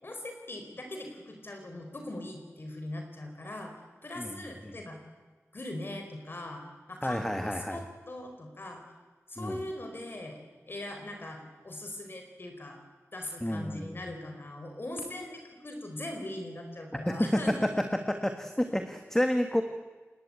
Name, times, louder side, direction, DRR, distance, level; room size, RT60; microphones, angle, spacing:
voice 1, 0.0-3.7 4.0-5.0 5.5-6.6 6.9-8.8 9.3-10.4 10.7-12.8 13.1-17.8 18.7-18.8, left 1 dB, 45° left, 4 dB, 4.4 m, -40 dB
voice 2, 7.0-7.8 9.4-9.6 13.4-14.0 17.1-17.4 18.1-19.6, equal, 10° left, 6 dB, 1.8 m, -30 dB
28.5 x 21.0 x 8.9 m, 1.3 s
wide cardioid pair, 95°, 5 cm